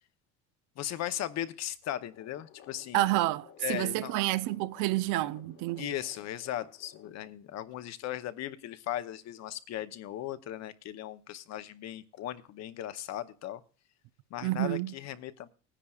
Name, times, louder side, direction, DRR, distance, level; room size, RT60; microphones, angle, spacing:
voice 1, 0.8-3.1 3.6-4.2 5.8-13.6 14.3-15.5, left 12 dB, 55° left, 0.8 m, -37 dB
sound 1, 2.1-7.1, left 10 dB, 75° left, 1.6 m, -56 dB
voice 2, 2.9-5.9 14.4-14.9, right 16 dB, 70° right, 0.5 m, -29 dB
19.5 x 10.0 x 2.4 m
supercardioid pair, 105°, 33 cm